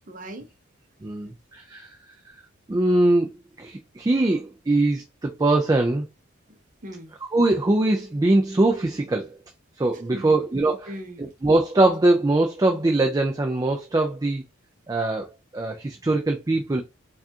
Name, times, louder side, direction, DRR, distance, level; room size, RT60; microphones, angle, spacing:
voice 1, 0.1-0.5 6.5-7.1 10.1-11.3, equal, 40° right, 0.8 m, -40 dB
voice 2, 1.0-1.9 2.7-3.3 3.6-6.1 7.2-9.3 9.8-10.9 11.2-14.4 14.9-15.3 15.5-16.8, right 2 dB, 20° right, 0.4 m, -22 dB
4.7 x 2.4 x 2.7 m
head